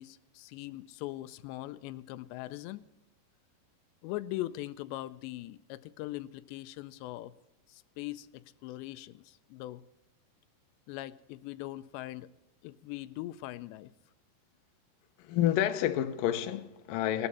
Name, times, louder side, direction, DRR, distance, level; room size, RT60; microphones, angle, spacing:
voice 1, 0.0-2.8 4.0-7.3 7.7-9.8 10.9-12.3 12.6-13.9, left 16 dB, 90° left, 2.8 m, -41 dB
voice 2, 15.2-17.3, left 12 dB, 75° left, 2.2 m, -29 dB
18.5 x 12.5 x 4.2 m
omnidirectional pair, 4.9 m